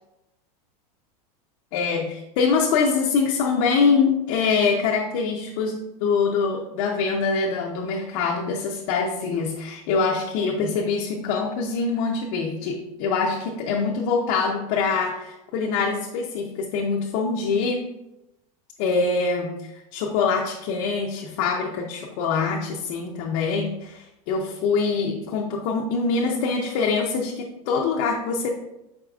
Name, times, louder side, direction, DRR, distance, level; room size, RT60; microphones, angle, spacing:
voice 1, 1.7-17.8 18.8-28.5, left 5 dB, 50° left, -1 dB, 0.5 m, -24 dB
4.8 x 4.3 x 2.3 m, 0.91 s
supercardioid pair, 145°, 20 cm